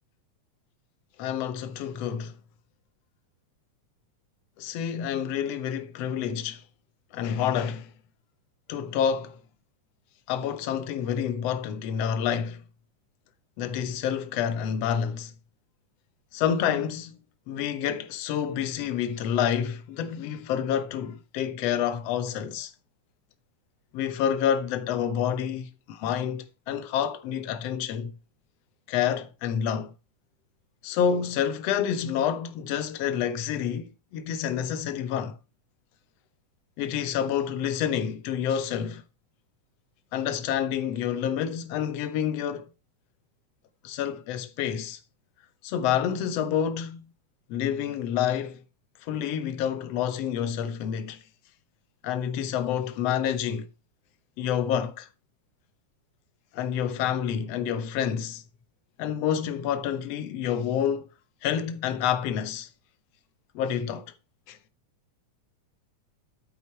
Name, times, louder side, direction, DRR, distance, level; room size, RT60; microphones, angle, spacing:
voice 1, 1.2-2.3 4.6-6.6 7.1-7.9 8.7-9.4 10.3-12.6 13.6-15.3 16.3-17.1 17.5-22.7 23.9-28.1 28.9-29.9 30.8-35.4 36.8-39.0 40.1-42.7 43.8-45.0 45.6-47.0 47.5-48.6 49.1-51.2 52.0-53.7 54.4-55.1 56.5-58.4 59.0-61.1 61.4-62.7 63.6-64.1 64.5-64.6, left 8 dB, 65° left, 1.8 m, -28 dB
9.2 x 6.6 x 4.5 m
omnidirectional pair, 3.7 m